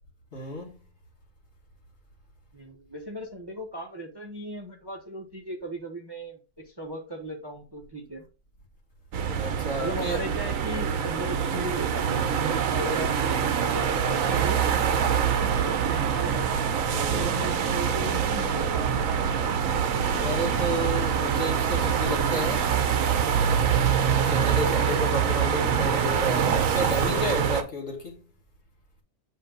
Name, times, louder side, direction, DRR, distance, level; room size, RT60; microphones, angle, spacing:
voice 1, 0.3-0.7 9.3-10.2 15.1-15.3 16.9-17.4 20.1-22.7 24.2-28.2, equal, 55° left, 2.2 m, -32 dB
voice 2, 2.5-8.2 9.8-14.6 14.9-16.5 17.1-19.0 20.1-20.4 25.5-25.9, right 1 dB, 20° right, 0.9 m, -37 dB
sound 1, 9.1-27.6, right 7 dB, 80° right, 1.2 m, -25 dB
7.9 x 2.9 x 5.3 m
omnidirectional pair, 1.4 m